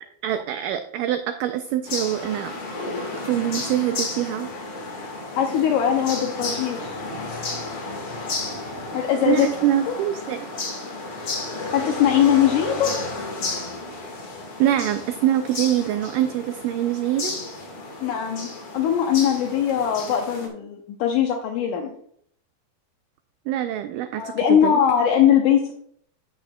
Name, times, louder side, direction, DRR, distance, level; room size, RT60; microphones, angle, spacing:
voice 1, 0.2-2.5 3.1-4.5 9.3-10.4 14.6-17.4 23.5-24.8, right 12 dB, 85° right, 8 dB, 1.9 m, -24 dB
sound 1, 1.9-20.5, left 3 dB, 45° left, 1.9 m, -32 dB
voice 2, 5.4-7.0 8.9-9.5 9.9-10.0 11.7-13.0 18.0-22.0 24.2-25.7, left 9 dB, 80° left, 2 dB, 1.9 m, -21 dB
10.5 x 8.5 x 2.2 m, 0.66 s
omnidirectional pair, 4.3 m